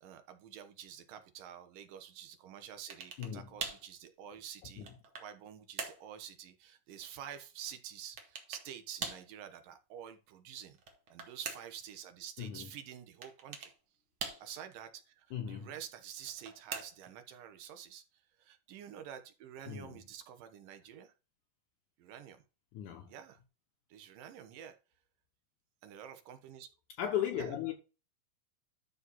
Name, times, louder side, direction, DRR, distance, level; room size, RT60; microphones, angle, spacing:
voice 1, 0.0-10.8 11.1-13.7 14.4-21.1 22.0-22.4 23.1-23.4 23.9-24.8 25.8-26.7 27.4-27.5, right 9 dB, 85° right, 2.8 m, -49 dB
sound 1, 2.9-3.4 3.6-3.9 4.5-5.4 5.8-6.1 8.2-8.7 9.0-9.3 10.7-11.8 13.2-13.8 14.2-14.7 16.2-17.2, right 5 dB, 50° right, 1.7 m, -42 dB
voice 2, 3.2-3.5 4.8-4.9 12.4-12.7 15.3-15.7 19.7-20.0 22.7-23.1 27.0-27.7, left 10 dB, 70° left, 2.5 m, -37 dB
12.0 x 4.1 x 4.1 m
omnidirectional pair, 3.8 m